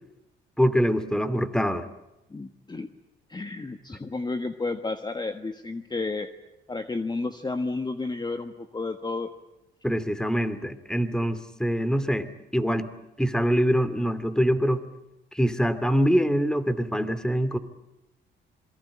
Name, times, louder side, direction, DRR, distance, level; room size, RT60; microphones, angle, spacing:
voice 1, 0.6-1.8 9.8-12.9 13.2-14.8 15.3-17.6, equal, 5° left, 13 dB, 2.4 m, -24 dB
voice 2, 2.3-2.9 3.3-6.3 6.7-9.3, left 3 dB, 20° left, 8 dB, 1.5 m, -31 dB
27.0 x 22.5 x 8.8 m, 0.93 s
cardioid pair, 90°, 20 cm